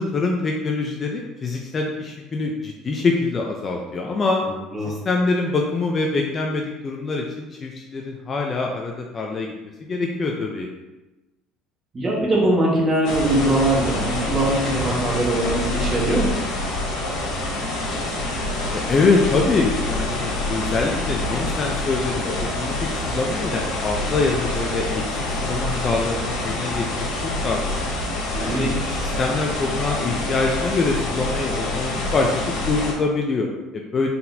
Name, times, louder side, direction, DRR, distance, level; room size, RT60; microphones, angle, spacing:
voice 1, 0.0-4.4 4.9-9.5 9.9-10.7 18.7-22.8 23.1-27.9 28.4-34.1, left 3 dB, 30° left, 0 dB, 0.5 m, -24 dB
voice 2, 4.4-4.9 11.9-16.3 28.3-29.0, right 1 dB, 25° right, -4 dB, 1.4 m, -22 dB
sound 1, 13.0-32.9, left 1 dB, 65° left, 1.2 m, -26 dB
4.2 x 4.1 x 2.7 m, 1.1 s
cardioid pair, 120°, 0 cm